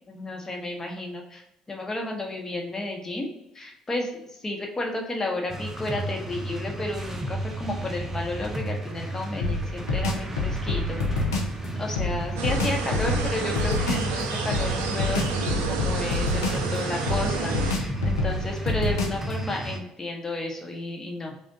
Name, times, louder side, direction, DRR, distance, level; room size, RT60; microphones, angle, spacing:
voice 1, 0.1-1.4 1.7-3.3 3.5-11.3 11.8-21.4, left 2 dB, 20° left, 1 dB, 1.1 m, -32 dB
sound 1, 5.5-19.8, right 1 dB, 20° right, 0.7 m, -33 dB
sound 2, 9.4-11.5 12.0-14.1 14.5-16.8 17.1-19.3, left 2 dB, 80° left, 0.6 m, -27 dB
sound 3, 12.4-17.7, right 5 dB, 65° right, 0.5 m, -31 dB
5.1 x 2.4 x 3.9 m, 0.85 s
figure-of-eight pair, 50°, 2 cm